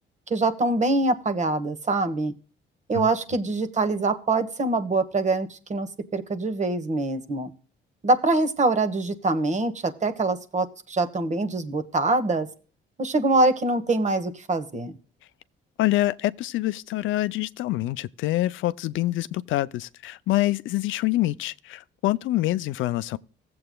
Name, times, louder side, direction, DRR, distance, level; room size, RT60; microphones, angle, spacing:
voice 1, 0.3-2.3 2.9-7.5 8.0-12.5 13.0-14.9, right 2 dB, 35° right, 1.2 m, -24 dB
voice 2, 15.8-23.2, left 16 dB, 80° left, 0.4 m, -26 dB
15.5 x 7.7 x 2.2 m
cardioid pair, 90°, 20 cm